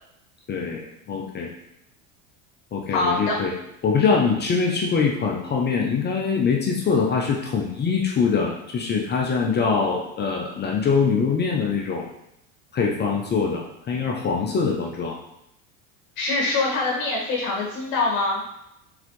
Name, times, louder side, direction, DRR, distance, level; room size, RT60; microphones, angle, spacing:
voice 1, 0.5-1.5 2.7-3.5 3.8-12.1 12.7-15.2, left 5 dB, 25° left, 0 dB, 0.6 m, -23 dB
voice 2, 2.9-3.3 16.2-18.4, left 3 dB, 50° left, -4 dB, 1.4 m, -24 dB
3.9 x 3.8 x 3.1 m, 0.81 s
supercardioid pair, 110°, 41 cm